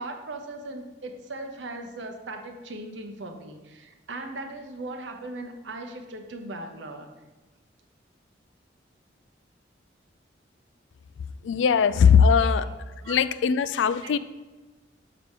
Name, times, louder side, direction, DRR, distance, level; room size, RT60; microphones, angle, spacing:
voice 1, 0.0-7.1 12.4-12.7 13.0-13.2 14.0-14.2, right 2 dB, 75° right, 5 dB, 0.9 m, -38 dB
voice 2, 11.4-12.6 13.1-14.2, left 6 dB, 80° left, 15 dB, 0.3 m, -20 dB
6.7 x 4.9 x 4.8 m, 1.2 s
head